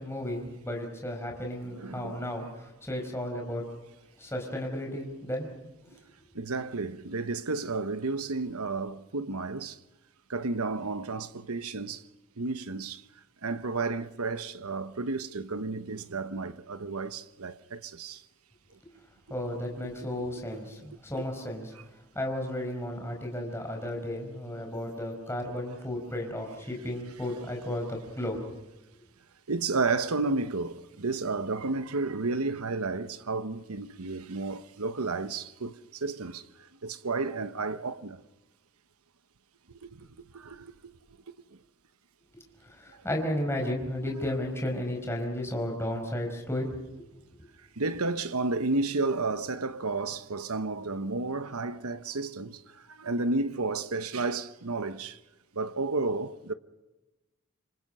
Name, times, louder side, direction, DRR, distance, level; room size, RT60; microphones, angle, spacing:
voice 1, 0.0-3.6 4.2-5.5 19.3-21.7 22.1-28.4 42.3-46.7 47.0-47.1, left 1 dB, 10° left, 5.0 m, -33 dB
voice 2, 1.6-2.3 5.9-6.0 6.3-9.8 10.3-12.0 12.4-13.0 13.4-18.2 29.5-36.4 36.8-38.2 40.0-40.1 40.3-40.7 42.9-43.0 44.0-44.2 47.8-55.2 55.5-56.5, right 3 dB, 90° right, 1.1 m, -32 dB
27.5 x 26.0 x 5.6 m
head